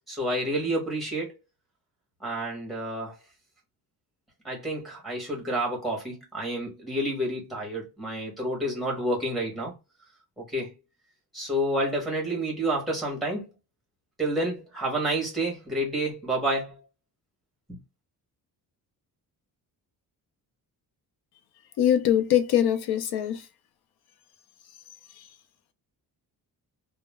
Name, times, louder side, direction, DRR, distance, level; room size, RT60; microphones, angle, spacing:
voice 1, 0.1-1.3 2.2-3.1 4.4-9.7 10.4-10.7 11.3-13.5 14.2-16.8, right 1 dB, ahead, 0.9 m, -29 dB
voice 2, 21.8-23.5 25.1-25.3, left 10 dB, 80° left, 0.6 m, -23 dB
2.2 x 2.0 x 3.0 m
wide cardioid pair, 170°, 37 cm